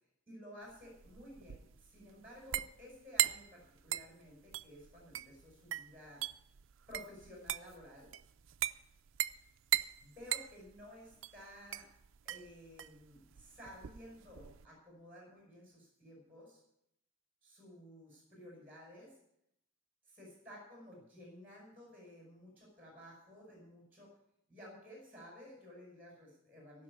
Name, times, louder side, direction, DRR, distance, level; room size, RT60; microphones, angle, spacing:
voice 1, 0.3-6.2 6.9-8.1 10.0-11.9 12.2-16.6 17.4-19.1 20.2-24.1 24.5-26.8, equal, 10° right, -2 dB, 5.2 m, -54 dB
sound 1, 0.7-14.7, right 14 dB, 65° right, 0.4 m, -39 dB
15.5 x 6.2 x 9.6 m, 0.78 s
head